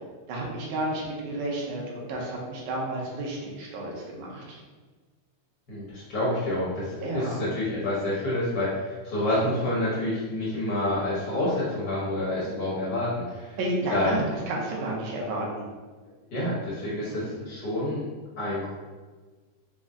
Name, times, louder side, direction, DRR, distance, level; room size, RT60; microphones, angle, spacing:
voice 1, 0.3-4.6 7.0-7.4 13.6-14.2 14.5-15.7 17.1-17.4, right 1 dB, 75° right, -2 dB, 2.1 m, -31 dB
voice 2, 5.7-13.6 13.9-14.2 16.3-18.1 18.4-18.8, left 1 dB, 70° left, -8 dB, 1.0 m, -28 dB
5.2 x 2.1 x 3.6 m, 1.4 s
omnidirectional pair, 3.4 m